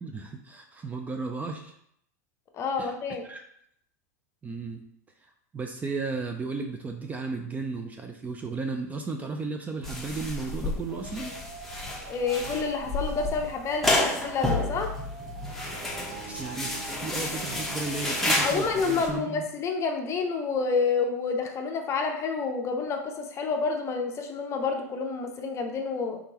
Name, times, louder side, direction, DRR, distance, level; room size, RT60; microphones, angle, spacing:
voice 1, 0.0-1.7 2.8-2.9 3.2-3.4 4.4-4.8 5.5-11.3 16.3-16.8 17.0-19.4, right 4 dB, 15° right, 4 dB, 0.4 m, -34 dB
voice 2, 2.5-3.2 12.1-14.9 18.4-26.2, left 4 dB, 30° left, 4 dB, 0.6 m, -29 dB
sound 1, 9.8-19.1, left 2 dB, 5° left, 1.0 m, -31 dB
sound 2, 10.9-18.3, right 4 dB, 40° right, 1.0 m, -45 dB
sound 3, 16.1-20.3, right 4 dB, 65° right, 1.2 m, -51 dB
3.6 x 3.4 x 2.9 m, 0.71 s
hypercardioid pair, 110°, 9 cm